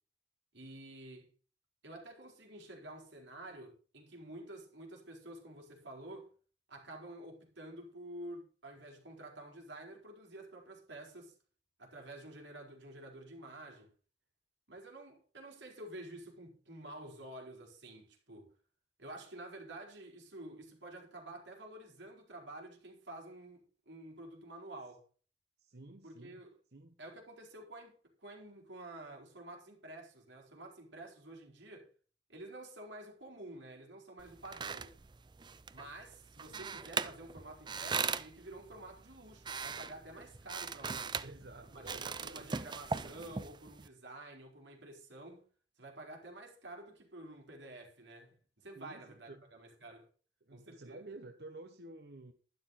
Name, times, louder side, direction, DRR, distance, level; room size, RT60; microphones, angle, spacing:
voice 1, 0.5-1.3 1.8-6.3 6.7-11.3 11.8-13.9 14.7-18.5 19.0-25.1 26.0-26.6 27.0-31.9 32.3-35.0 35.7-41.2 41.6-45.5 45.8-50.1 50.5-51.0, right 1 dB, 90° right, 4.6 m, -50 dB
voice 2, 25.6-26.4 26.7-27.0 40.9-42.5 48.7-49.4 50.4-52.3, right 2 dB, 60° right, 1.0 m, -51 dB
sound 1, 34.2-43.9, right 5 dB, 25° right, 0.5 m, -40 dB
12.0 x 11.5 x 4.1 m
head